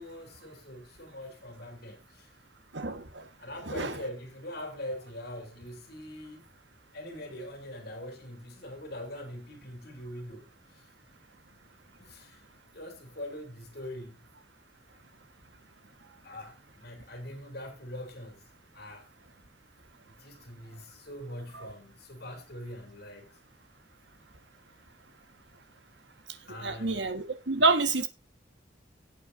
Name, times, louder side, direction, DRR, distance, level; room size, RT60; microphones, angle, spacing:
voice 1, 0.0-2.4 3.4-6.5 6.9-10.9 12.0-12.4 12.7-14.2 16.2-18.4 18.7-19.1 20.0-23.4 26.5-27.1, left 1 dB, 60° left, 3.0 m, -43 dB
voice 2, 2.7-3.2 3.7-4.0 21.5-21.7 26.6-28.1, right 3 dB, 75° right, 1.5 m, -28 dB
17.0 x 8.4 x 2.7 m
head